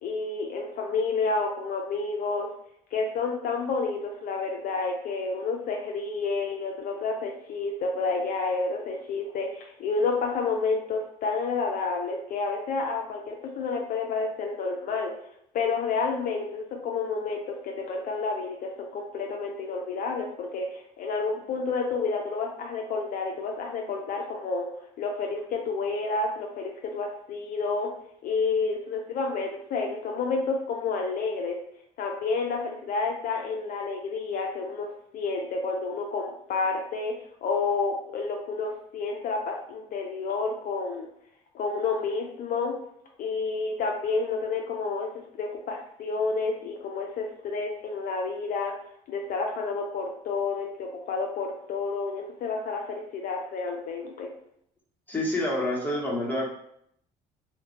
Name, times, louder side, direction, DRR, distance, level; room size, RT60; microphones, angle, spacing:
voice 1, 0.0-2.5 2.9-15.1 15.5-24.7 25.0-27.9 28.2-31.6 32.0-37.1 37.4-41.1 41.5-42.8 43.2-45.1 45.3-48.7 49.1-54.3, left 4 dB, 55° left, 1 dB, 0.4 m, -30 dB
voice 2, 55.1-56.5, left 1 dB, 10° left, -4 dB, 1.0 m, -27 dB
2.2 x 2.2 x 2.7 m, 0.71 s
supercardioid pair, 70°, 18 cm